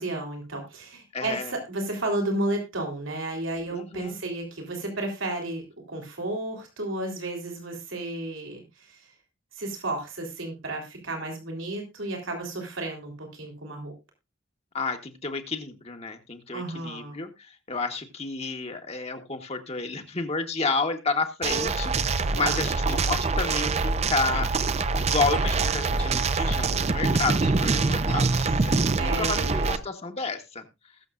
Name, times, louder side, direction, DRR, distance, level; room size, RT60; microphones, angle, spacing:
voice 1, 0.0-9.1 9.5-13.9 16.5-17.2 22.3-22.7 29.0-29.8, right 2 dB, 80° right, 3 dB, 3.5 m, -32 dB
voice 2, 1.1-1.5 3.7-4.2 14.7-17.3 17.7-24.5 25.0-30.6, left 3 dB, 30° left, 4 dB, 1.2 m, -31 dB
sound 1, 21.4-29.8, right 3 dB, 35° right, 0.6 m, -25 dB
20.5 x 6.9 x 2.5 m, 0.26 s
head